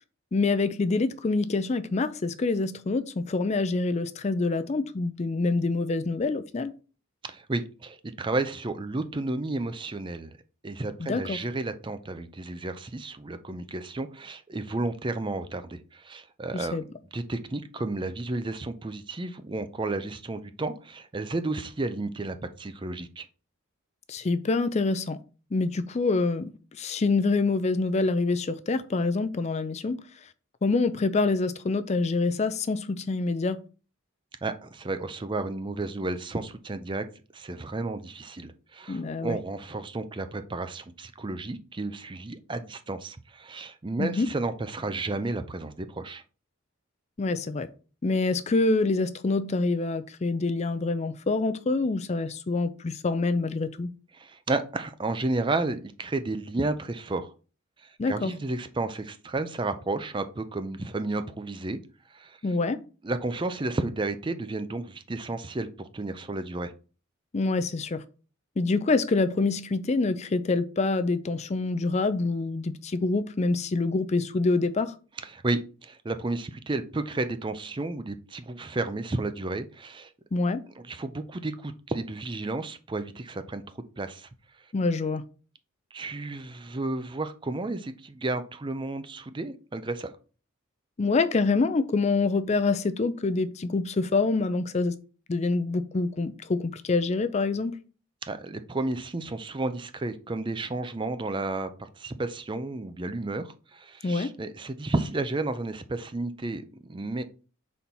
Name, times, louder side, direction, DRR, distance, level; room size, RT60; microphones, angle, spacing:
voice 1, 0.3-6.7 11.0-11.4 16.5-16.8 24.1-25.2 25.5-30.0 30.6-33.6 38.9-39.4 44.0-44.3 47.2-47.7 48.0-53.9 58.0-58.3 62.4-62.8 67.3-68.0 68.6-75.0 80.3-80.6 84.7-85.2 91.0-94.9 95.3-97.8 104.0-104.3, left 3 dB, 35° left, 0.4 m, -26 dB
voice 2, 7.2-10.4 10.6-16.8 17.1-23.3 34.4-37.0 37.3-46.2 54.1-57.3 57.8-61.8 62.1-62.4 63.0-66.7 75.3-80.1 80.8-83.6 84.0-84.3 85.9-90.1 98.2-107.2, right 2 dB, 25° right, 0.5 m, -32 dB
4.4 x 4.2 x 5.4 m
head